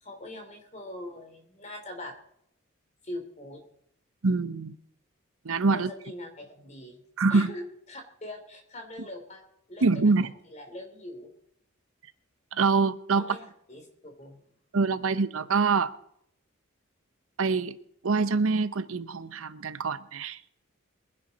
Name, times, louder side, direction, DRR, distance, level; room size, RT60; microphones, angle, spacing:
voice 1, 0.0-2.1 3.0-3.6 5.7-7.0 7.3-9.4 9.7-10.1 10.5-11.3 13.1-14.4, left 1 dB, 35° left, 3.1 m, -42 dB
voice 2, 4.2-4.8 5.4-5.9 7.2-7.5 9.8-10.3 12.5-13.2 14.7-15.9 17.4-17.8 18.0-20.4, right 4 dB, 80° right, 0.7 m, -25 dB
22.0 x 11.0 x 4.2 m
head